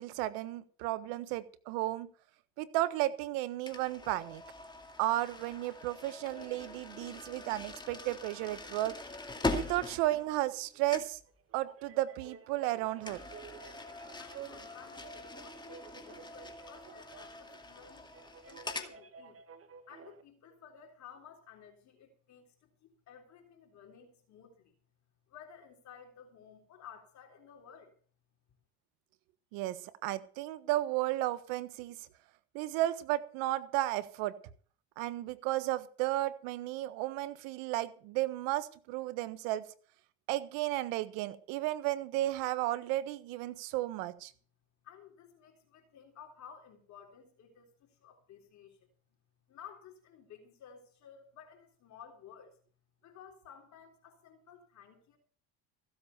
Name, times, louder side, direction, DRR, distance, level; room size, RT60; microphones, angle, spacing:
voice 1, 0.0-2.1 2.6-4.4 5.0-8.9 9.5-11.2 11.5-13.2 29.5-32.1 32.5-34.4 35.0-39.6 40.3-44.3, right 16 dB, 75° right, 14 dB, 1.4 m, -33 dB
sound 1, 3.7-10.6 10.9-11.2 13.0-18.9, left 2 dB, 15° left, 2.3 m, -42 dB
sound 2, 8.1-20.2, right 7 dB, 40° right, 1.9 m, -54 dB
voice 2, 14.2-18.1 18.4-19.4 19.9-24.8 25.3-28.0 44.8-48.9 49.5-52.6 53.0-55.2, left 8 dB, 55° left, 3 dB, 3.7 m, -54 dB
15.5 x 7.9 x 6.9 m, 0.44 s
supercardioid pair, 80°, 33 cm